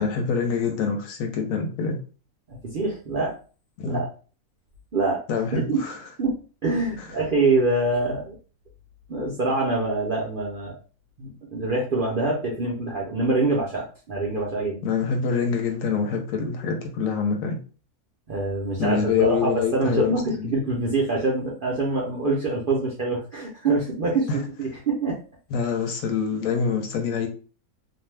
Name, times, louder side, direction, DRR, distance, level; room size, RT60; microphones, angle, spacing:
voice 1, 0.0-2.0 3.8-4.0 5.3-6.0 7.0-7.1 14.8-17.6 18.8-20.5 24.3-24.4 25.5-27.3, left 6 dB, 70° left, 5 dB, 0.9 m, -25 dB
voice 2, 2.5-3.4 3.8-4.1 4.9-5.2 5.5-5.8 6.2-6.3 6.6-8.4 9.1-10.7 11.2-14.8 18.3-24.3 24.6-25.2, right 3 dB, 55° right, -4 dB, 0.5 m, -25 dB
2.5 x 2.2 x 3.2 m, 0.38 s
omnidirectional pair, 1.6 m